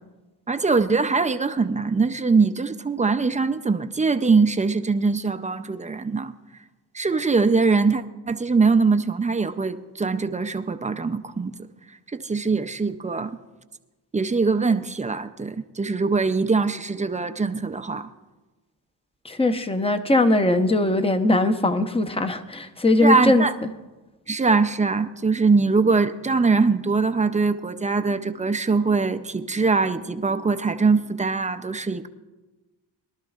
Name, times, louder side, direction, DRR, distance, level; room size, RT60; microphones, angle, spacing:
voice 1, 0.5-6.3 6.9-11.6 12.1-13.4 14.1-18.1 23.0-23.5 24.3-32.1, right 4 dB, 20° right, 0.4 m, -22 dB
voice 2, 19.2-23.5, left 2 dB, 15° left, 0.7 m, -20 dB
22.5 x 12.0 x 2.4 m
cardioid pair, 100°, 42 cm